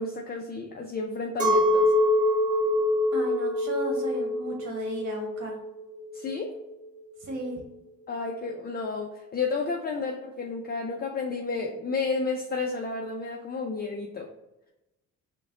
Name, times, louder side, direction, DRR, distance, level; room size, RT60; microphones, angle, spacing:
voice 1, 0.0-1.9 6.1-6.5 8.1-14.3, left 4 dB, 30° left, 1 dB, 0.5 m, -31 dB
Chink clink, 1.4-6.8, left 1 dB, 25° right, 1.5 m, -25 dB
voice 2, 3.1-5.6 7.2-7.6, right 1 dB, 50° right, 0 dB, 1.2 m, -35 dB
4.8 x 2.3 x 3.6 m, 0.95 s
cardioid pair, 90°, 30 cm